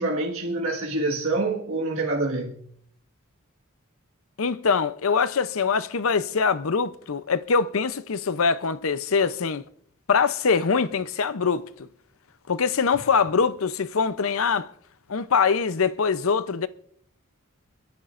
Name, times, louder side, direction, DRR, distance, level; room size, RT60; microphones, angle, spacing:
voice 1, 0.0-2.6, right 2 dB, 70° right, 1.7 m, -26 dB
voice 2, 4.4-9.6 10.1-11.9 12.5-14.7 15.1-16.7, left 5 dB, 70° left, 0.6 m, -23 dB
29.5 x 10.5 x 2.5 m
head